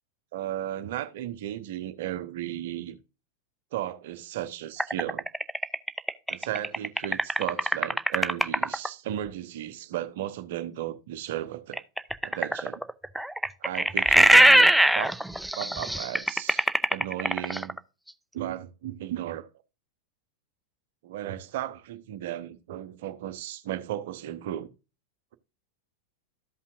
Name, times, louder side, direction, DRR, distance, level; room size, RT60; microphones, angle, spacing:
voice 1, 0.3-3.0 3.7-5.2 6.3-11.8 12.2-12.8 13.6-15.2 15.5-16.6 16.9-17.8 18.3-19.5 21.0-24.7, right 12 dB, 55° right, 0.9 m, -35 dB
sound 1, 4.8-8.9 11.7-17.8, right 1 dB, ahead, 0.4 m, -22 dB
13.5 x 5.5 x 2.6 m
figure-of-eight pair, 90°, 0 cm